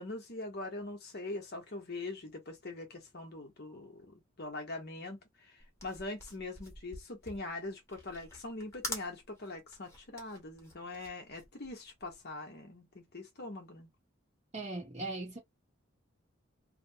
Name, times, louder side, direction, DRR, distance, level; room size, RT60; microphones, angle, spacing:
voice 1, 0.0-13.9, left 2 dB, 50° left, 0.9 m, -43 dB
sound 1, 5.6-12.3, left 2 dB, 15° left, 1.2 m, -46 dB
voice 2, 14.5-15.4, right 2 dB, 35° right, 0.8 m, -39 dB
2.9 x 2.1 x 2.7 m
head